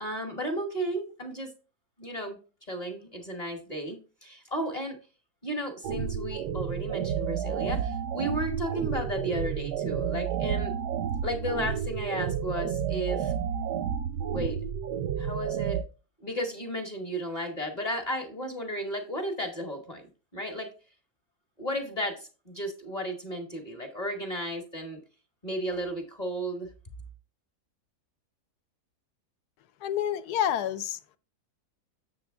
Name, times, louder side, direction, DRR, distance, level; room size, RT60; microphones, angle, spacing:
voice 1, 0.0-1.5 2.0-2.4 2.7-5.0 5.4-10.7 11.2-13.3 14.3-14.6 15.2-15.8 16.2-20.0 20.3-20.7 21.6-25.0 25.4-26.7, equal, 30° left, 1.0 m, -34 dB
sound 1, 5.8-15.8, right 8 dB, 90° right, 1.2 m, -31 dB
voice 2, 29.8-31.2, left 10 dB, 75° left, 1.1 m, -29 dB
7.9 x 6.4 x 3.4 m
omnidirectional pair, 1.7 m